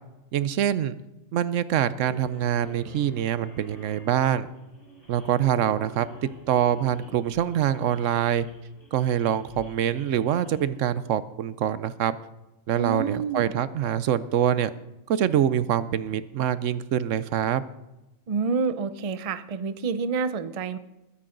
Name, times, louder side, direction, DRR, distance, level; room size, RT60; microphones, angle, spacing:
voice 1, 0.3-1.0 1.3-4.5 5.1-8.5 8.9-12.2 12.7-14.7 15.1-17.6, right 10 dB, 75° right, 15 dB, 1.0 m, -25 dB
sound 1, 2.0-10.6, equal, 30° left, 4.9 m, -50 dB
voice 2, 12.7-13.4 18.3-20.8, right 5 dB, 40° right, 12 dB, 0.5 m, -28 dB
21.0 x 10.0 x 3.8 m, 0.97 s
omnidirectional pair, 1.3 m